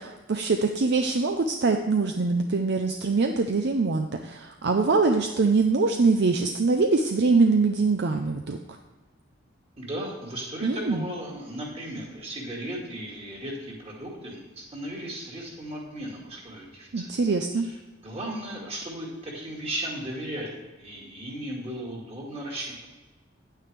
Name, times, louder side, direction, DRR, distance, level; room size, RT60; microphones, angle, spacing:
voice 1, 0.0-8.6 10.6-11.1 16.9-17.7, right 4 dB, 60° right, 5 dB, 0.5 m, -23 dB
voice 2, 9.8-17.1 17.6-22.9, right 1 dB, 30° right, -2 dB, 2.1 m, -36 dB
9.5 x 9.0 x 3.3 m, 1.2 s
head